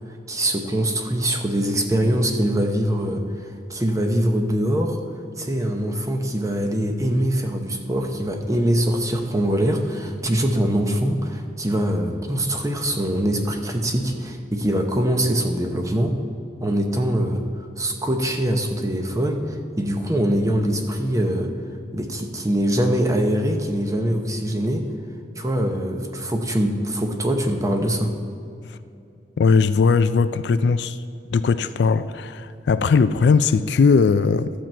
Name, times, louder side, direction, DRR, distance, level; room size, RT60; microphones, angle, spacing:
voice 1, 0.3-5.0 5.4-16.1 16.6-17.4 17.8-21.5 21.9-24.9 25.4-28.1, right 1 dB, 20° right, 4 dB, 0.9 m, -23 dB
voice 2, 29.4-31.0 31.3-34.5, left 5 dB, 70° left, 13 dB, 0.3 m, -19 dB
12.5 x 7.5 x 4.4 m, 2.6 s
head